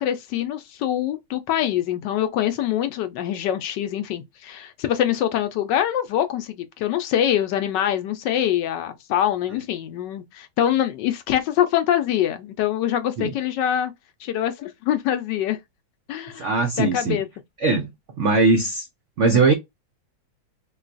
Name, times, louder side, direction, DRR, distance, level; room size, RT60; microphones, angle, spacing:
voice 1, 0.0-13.9 14.2-15.6 16.1-16.5 16.8-17.3, left 11 dB, 75° left, 1.1 m, -24 dB
voice 2, 16.4-17.2 17.6-17.9 18.2-18.8 19.2-19.5, right 3 dB, 80° right, 0.6 m, -20 dB
3.7 x 2.3 x 2.4 m
omnidirectional pair, 2.1 m